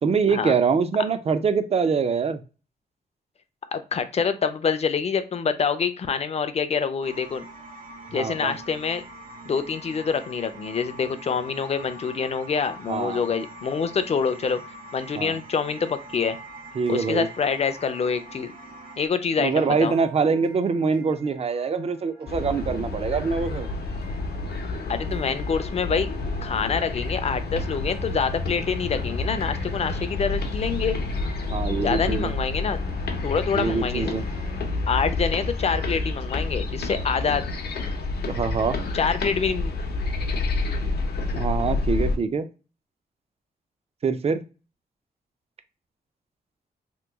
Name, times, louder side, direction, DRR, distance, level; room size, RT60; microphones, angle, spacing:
voice 1, 0.0-2.4 8.1-8.5 12.9-13.3 15.2-15.4 16.8-17.3 19.4-23.7 31.5-32.3 33.5-34.2 38.3-38.8 41.4-42.5 44.0-44.4, right 5 dB, 40° right, 11 dB, 0.4 m, -24 dB
voice 2, 3.7-7.4 8.1-9.0 9.5-14.6 14.9-16.4 16.9-18.5 19.0-19.9 24.9-26.1 26.4-31.0 31.8-32.8 33.2-34.1 34.9-37.4 38.9-39.7, left 6 dB, 40° left, 10 dB, 0.4 m, -26 dB
sound 1, 7.0-19.1, right 1 dB, 55° right, 1.0 m, -43 dB
sound 2, 16.4-34.6, right 3 dB, 75° right, 1.3 m, -48 dB
sound 3, 22.3-42.2, left 3 dB, 80° left, 0.6 m, -29 dB
3.0 x 2.2 x 3.3 m, 0.33 s
wide cardioid pair, 115°, 17 cm